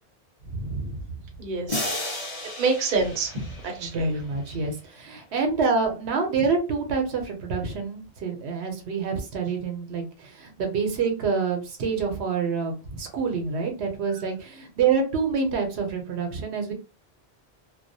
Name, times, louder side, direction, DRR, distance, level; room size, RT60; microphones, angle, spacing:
voice 1, 0.4-1.0 3.8-16.7, right 5 dB, 80° right, 4 dB, 0.9 m, -27 dB
voice 2, 1.4-1.9 2.6-4.1, right 4 dB, 55° right, 2 dB, 0.7 m, -27 dB
sound 1, 1.7-4.5, left 2 dB, 40° left, 0.6 m, -34 dB
2.3 x 2.1 x 2.6 m, 0.33 s
omnidirectional pair, 1.1 m